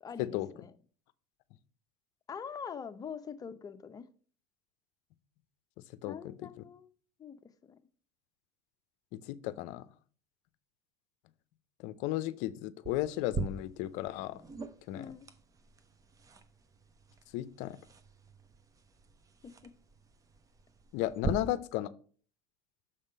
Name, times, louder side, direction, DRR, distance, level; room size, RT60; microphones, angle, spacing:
voice 1, 0.0-0.7 2.3-4.1 6.0-6.9 7.2-7.8 14.9-15.3 19.4-19.7 21.3-21.6, left 7 dB, 30° left, 9 dB, 0.7 m, -44 dB
voice 2, 9.1-9.9 11.8-14.4 14.9-15.1 17.3-17.8 20.9-21.9, left 14 dB, 70° left, 16 dB, 0.5 m, -34 dB
sound 1, 12.8-21.3, right 5 dB, 25° right, 0.7 m, -43 dB
6.6 x 3.6 x 5.4 m, 0.43 s
supercardioid pair, 90°, 13 cm